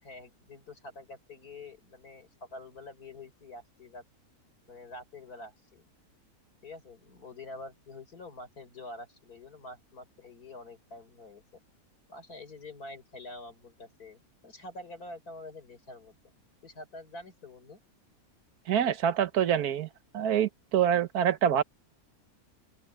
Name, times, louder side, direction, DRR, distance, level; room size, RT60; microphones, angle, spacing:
voice 1, 0.0-4.0 4.7-5.8 6.6-11.4 12.1-16.2 16.6-17.8, left 2 dB, 80° left, 5.1 m, -46 dB
voice 2, 18.7-19.9 20.1-21.6, right 9 dB, 80° right, 1.5 m, -26 dB
open air
omnidirectional pair, 1.6 m